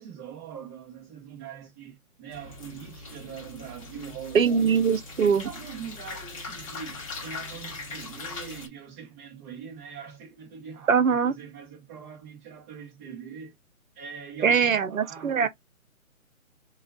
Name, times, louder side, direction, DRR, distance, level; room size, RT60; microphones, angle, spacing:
voice 1, 0.0-4.8 5.2-13.5 13.9-15.5, right 7 dB, 10° right, 0.7 m, -42 dB
sound 1, 2.3-8.7, left 3 dB, 25° left, 0.9 m, -40 dB
voice 2, 4.3-5.5 10.9-11.3 14.4-15.5, right 6 dB, 65° right, 0.8 m, -22 dB
5.7 x 2.5 x 2.2 m
hypercardioid pair, 155°, 43 cm